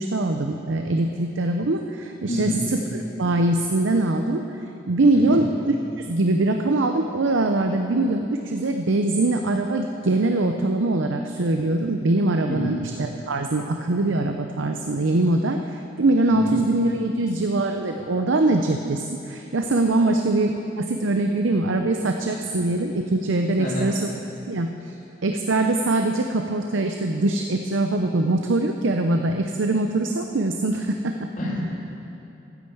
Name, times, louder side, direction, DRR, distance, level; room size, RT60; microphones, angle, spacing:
voice 1, 0.0-4.4 4.9-24.0 24.5-25.0 25.2-31.3, right 2 dB, 85° right, 5 dB, 0.7 m, -23 dB
voice 2, 2.3-2.6 5.1-5.4 12.5-12.7 16.3-16.5 23.6-23.9 31.4-31.6, left 1 dB, 45° left, -5 dB, 3.2 m, -27 dB
13.0 x 10.0 x 7.9 m, 2.8 s
head